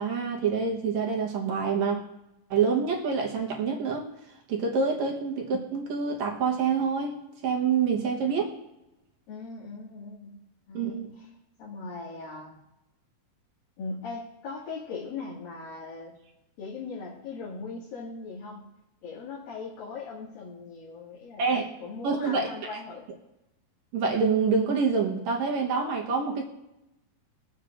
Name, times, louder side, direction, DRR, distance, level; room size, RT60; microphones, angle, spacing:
voice 1, 0.0-2.0 2.5-4.1 4.5-8.4 10.7-11.1 21.4-21.6 22.0-22.5 23.9-26.4, right 5 dB, 65° right, 0 dB, 2.0 m, -26 dB
voice 2, 9.3-10.4 10.7-11.3 11.6-12.6 13.8-16.2 16.6-18.7 19.0-23.1, left 4 dB, 80° left, -8 dB, 3.7 m, -39 dB
22.0 x 8.0 x 2.5 m, 0.92 s
omnidirectional pair, 4.1 m